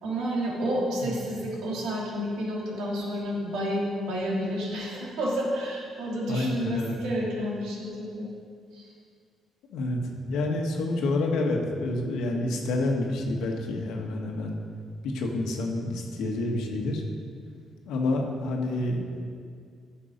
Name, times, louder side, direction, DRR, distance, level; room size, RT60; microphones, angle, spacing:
voice 1, 0.0-8.3 8.7-8.9, equal, 85° right, -3 dB, 2.6 m, -30 dB
voice 2, 6.3-7.0 9.7-10.0 10.3-14.6 15.0-17.0 17.9-19.2, left 2 dB, 90° left, 1 dB, 1.5 m, -28 dB
11.5 x 6.6 x 5.2 m, 2.2 s
cardioid pair, 90°, 0 cm